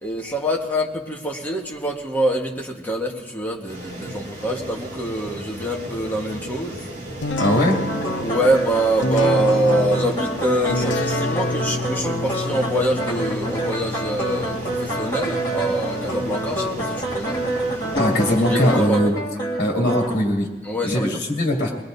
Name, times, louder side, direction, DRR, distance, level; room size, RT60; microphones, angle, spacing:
voice 1, 0.0-6.9 8.2-17.4 18.5-19.0 20.6-21.1, right 1 dB, 10° left, -1 dB, 1.4 m, -25 dB
sound 1, 3.7-18.9, right 1 dB, 40° right, 2.3 m, -36 dB
sound 2, 7.2-18.7, left 2 dB, 80° left, 0.6 m, -29 dB
voice 2, 7.4-7.8 17.9-19.1 19.6-20.5 20.8-21.7, left 1 dB, 60° left, -2 dB, 2.5 m, -20 dB
sound 3, 7.9-20.1, right 1 dB, 25° left, 2.2 m, -27 dB
22.5 x 20.5 x 2.7 m, 1.2 s
head